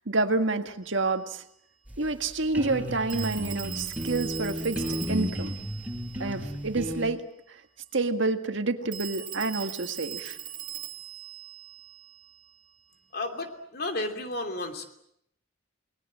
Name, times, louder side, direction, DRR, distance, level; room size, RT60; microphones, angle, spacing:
voice 1, 0.1-1.4 2.0-4.8 5.1-5.5 6.2-7.2 7.9-10.4, right 3 dB, 65° right, 7 dB, 1.8 m, -28 dB
Telephone, 0.8-1.0 3.1-6.8 8.9-12.6, right 12 dB, 40° right, 3.4 m, -40 dB
sound 1, 1.9-7.0, equal, 10° right, 5.6 m, -34 dB
voice 2, 13.1-14.9, left 2 dB, 50° left, 5 dB, 3.0 m, -32 dB
29.5 x 20.0 x 7.5 m, 0.74 s
head